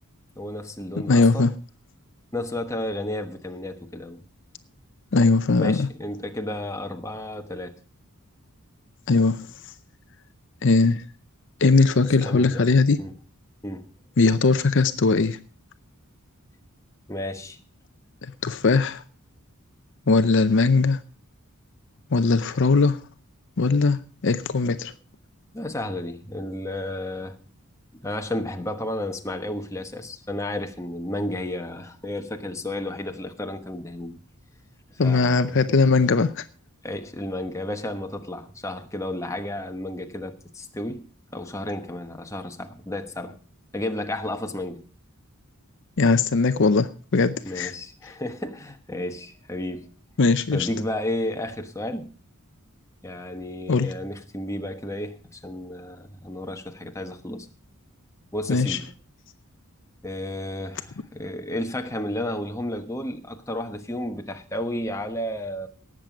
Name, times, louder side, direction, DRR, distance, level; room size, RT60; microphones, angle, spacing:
voice 1, 0.4-1.5 2.3-4.2 5.6-7.7 12.0-12.7 13.0-13.1 13.6-13.9 17.1-17.6 25.5-27.4 27.9-34.2 34.9-35.6 36.8-41.1 41.3-43.4 43.7-44.8 47.4-49.9 50.5-52.1 53.0-57.5 58.3-58.9 60.0-65.7, left 1 dB, 15° left, 1.1 m, -32 dB
voice 2, 1.1-1.5 5.1-5.9 9.1-9.4 10.6-11.0 11.6-13.0 14.2-15.4 18.4-19.0 20.1-21.0 22.1-23.0 23.6-24.0 24.2-24.9 35.0-36.4 46.0-47.7 50.2-50.7 53.7-53.9 58.5-58.8, left 3 dB, 55° left, 0.6 m, -19 dB
18.5 x 7.6 x 5.1 m
head